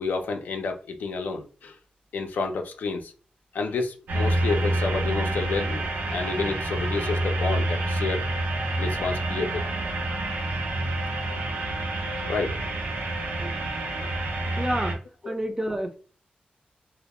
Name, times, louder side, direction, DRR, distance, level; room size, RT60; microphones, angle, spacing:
voice 1, 0.0-1.8 2.1-3.1 3.5-8.3 8.8-9.6 12.3-12.6 15.2-15.3, left 4 dB, 80° left, 0.4 m, -30 dB
sound 1, 4.1-14.9, right 1 dB, 85° right, 0.6 m, -28 dB
voice 2, 14.6-16.0, right 1 dB, 15° right, 0.4 m, -30 dB
2.2 x 2.0 x 2.8 m
wide cardioid pair, 115°, 3 cm